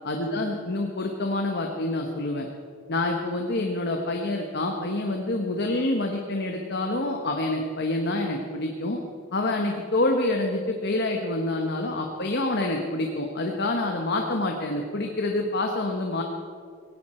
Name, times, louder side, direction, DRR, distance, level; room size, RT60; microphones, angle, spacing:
voice 1, 0.0-2.5 2.9-9.0 9.3-16.2, left 2 dB, 55° left, 2 dB, 1.3 m, -27 dB
17.5 x 17.5 x 4.4 m, 2.2 s
head